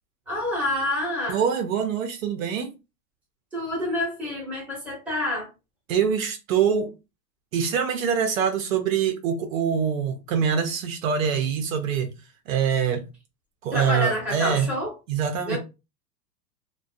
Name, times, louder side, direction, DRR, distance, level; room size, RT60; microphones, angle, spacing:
voice 1, 0.3-1.4 3.5-5.5 13.7-14.9 15.5-15.6, left 1 dB, 5° right, 0.7 m, -27 dB
voice 2, 1.3-2.7 5.9-6.9 7.5-12.1 12.5-13.1 13.6-14.7 15.1-15.6, right 7 dB, 55° right, 0.5 m, -24 dB
2.4 x 2.2 x 2.4 m
supercardioid pair, 150°, 50 cm